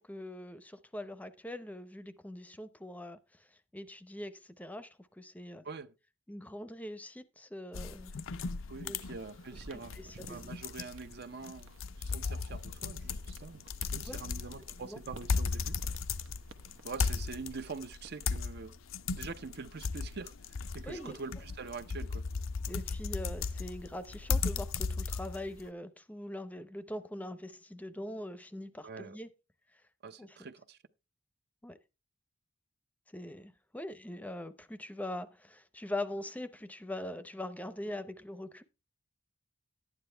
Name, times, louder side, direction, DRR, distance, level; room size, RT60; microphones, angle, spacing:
voice 1, 0.1-3.2 3.7-5.6 6.3-8.2 8.8-9.0 9.7-10.5 14.1-14.2 14.8-15.0 20.9-21.2 22.7-29.3 30.2-30.4 31.6-31.8 33.1-38.6, left 1 dB, 10° left, 0.6 m, -42 dB
sound 1, 7.7-25.7, left 4 dB, 90° left, 0.6 m, -36 dB
voice 2, 8.7-11.7 12.0-13.7 13.9-15.8 16.8-18.8 19.1-20.3 20.7-22.2 28.8-29.2 30.0-30.8, right 4 dB, 55° right, 0.6 m, -44 dB
sound 2, 8.8-18.6, right 2 dB, 85° right, 1.0 m, -55 dB
12.0 x 9.7 x 3.3 m
head